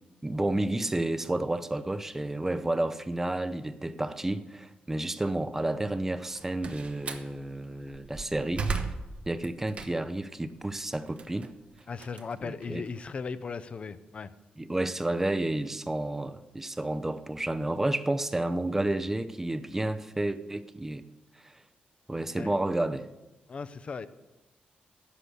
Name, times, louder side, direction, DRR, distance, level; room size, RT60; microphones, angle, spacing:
voice 1, 0.2-8.7 9.3-11.5 12.4-12.8 14.6-21.0 21.4-21.5 22.1-23.1, right 1 dB, 10° right, 0.5 m, -31 dB
Slam, 6.2-7.3 7.9-10.2 10.6-13.0, right 4 dB, 40° right, 0.9 m, -36 dB
voice 2, 11.9-14.3 22.3-22.5 23.5-24.1, left 5 dB, 40° left, 0.5 m, -37 dB
11.5 x 6.8 x 7.9 m
wide cardioid pair, 155°, 3 cm